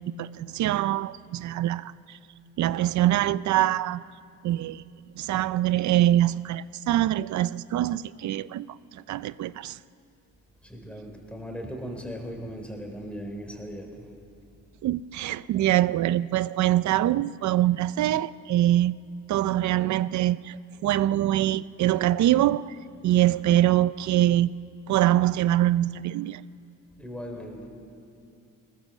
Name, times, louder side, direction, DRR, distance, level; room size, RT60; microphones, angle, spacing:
voice 1, 0.1-2.2 2.6-4.0 4.4-4.8 5.1-8.7 8.9-9.8 14.8-18.9 19.3-20.6 20.8-22.8 23.0-24.5 24.9-26.4, right 13 dB, 70° right, 0.6 m, -24 dB
voice 2, 10.6-14.1 27.0-27.7, equal, 5° left, 3.9 m, -38 dB
20.5 x 19.0 x 7.3 m
cardioid pair, 90°, 30 cm